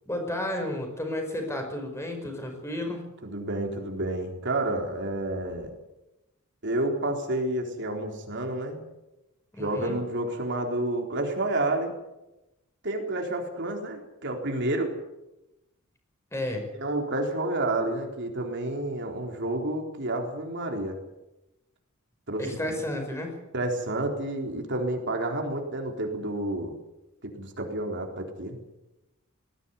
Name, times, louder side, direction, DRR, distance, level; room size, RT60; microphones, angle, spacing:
voice 1, 0.1-3.0 9.5-10.0 16.3-16.6 22.4-23.3, left 1 dB, 15° left, 4 dB, 5.4 m, -32 dB
voice 2, 3.2-5.7 6.6-8.8 9.6-11.9 12.8-14.9 16.7-21.0 22.3-22.5 23.5-26.7 27.2-28.6, right 1 dB, 55° right, 2 dB, 3.9 m, -30 dB
20.0 x 16.0 x 9.6 m, 0.95 s
head